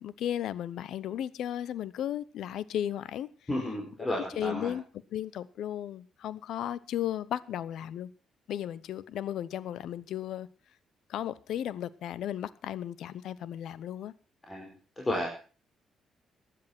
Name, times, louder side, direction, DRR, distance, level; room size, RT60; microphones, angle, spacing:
voice 1, 0.0-3.3 4.2-4.8 5.1-8.1 8.5-10.5 11.1-14.1, left 11 dB, 75° left, 0.8 m, -35 dB
voice 2, 3.5-4.7 14.5-15.3, left 1 dB, 20° left, 4.7 m, -33 dB
15.5 x 10.5 x 6.0 m
cardioid pair, 90°, 0 cm